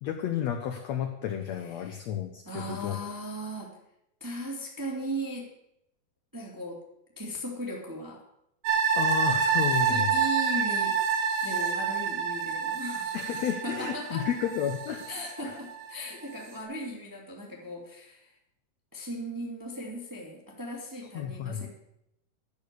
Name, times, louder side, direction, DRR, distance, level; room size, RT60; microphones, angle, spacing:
voice 1, 0.0-3.0 8.9-10.1 13.1-15.1 15.4-15.6 21.1-21.7, left 9 dB, 80° left, 6 dB, 1.5 m, -32 dB
voice 2, 1.5-2.0 2.4-3.7 4.2-5.5 6.3-6.8 7.1-8.2 9.9-11.0 11.4-13.2 13.6-14.3 15.1-18.3 18.9-21.7, equal, 10° right, -1 dB, 1.2 m, -37 dB
sound 1, 8.7-15.9 16.3-16.4, right 6 dB, 85° right, 3.5 m, -28 dB
11.0 x 6.6 x 8.2 m, 0.79 s
omnidirectional pair, 4.1 m